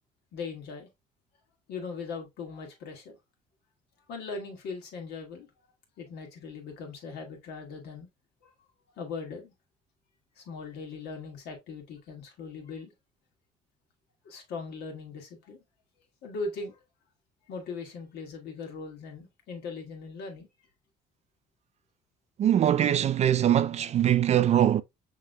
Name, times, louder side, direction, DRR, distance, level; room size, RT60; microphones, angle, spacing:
voice 1, 0.3-0.9 1.7-3.2 4.1-5.5 6.0-8.1 8.4-8.5 9.0-9.5 10.4-12.9 14.2-15.6 16.2-16.8 17.5-20.5, left 4 dB, 75° left, 1.7 m, -39 dB
voice 2, 22.4-24.8, right 10 dB, 40° right, 0.4 m, -22 dB
5.8 x 3.1 x 2.5 m
cardioid pair, 110°, 17 cm